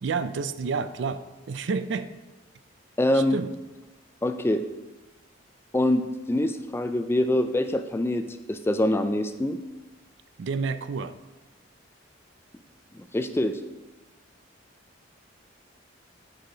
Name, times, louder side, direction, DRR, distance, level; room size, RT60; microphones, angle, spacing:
voice 1, 0.0-2.1 3.1-3.5 10.4-11.1, right 4 dB, 60° right, 12 dB, 0.4 m, -29 dB
voice 2, 3.0-3.4 4.2-4.6 5.7-9.6 12.9-13.6, left 1 dB, 10° left, 9 dB, 0.3 m, -25 dB
9.1 x 4.9 x 5.1 m, 1.2 s
head